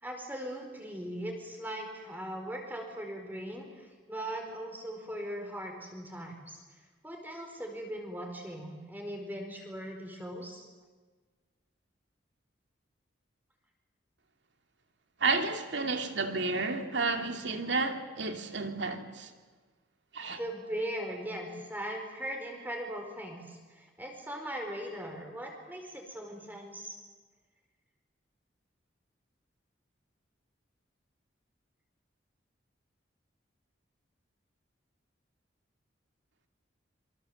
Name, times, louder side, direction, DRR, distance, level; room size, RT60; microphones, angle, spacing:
voice 1, 0.0-6.6 7.0-10.7 20.4-27.0, right 1 dB, 10° right, 4.5 m, -39 dB
voice 2, 15.2-19.3 20.1-20.4, right 3 dB, 70° right, 2.5 m, -31 dB
27.0 x 24.5 x 7.9 m
head